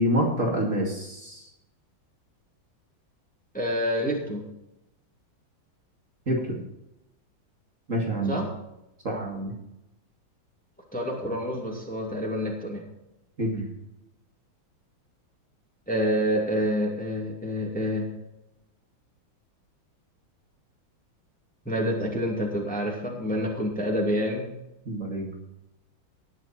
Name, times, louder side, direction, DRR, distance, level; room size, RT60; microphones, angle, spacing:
voice 1, 0.0-1.4 6.3-6.6 7.9-8.4 9.0-9.5 13.4-13.6 24.9-25.3, equal, 35° right, -2 dB, 2.7 m, -27 dB
voice 2, 3.5-4.4 8.3-8.5 10.9-12.8 15.9-18.1 21.7-24.5, equal, 5° left, -1 dB, 2.5 m, -27 dB
19.0 x 6.4 x 4.4 m, 0.89 s
omnidirectional pair, 2.2 m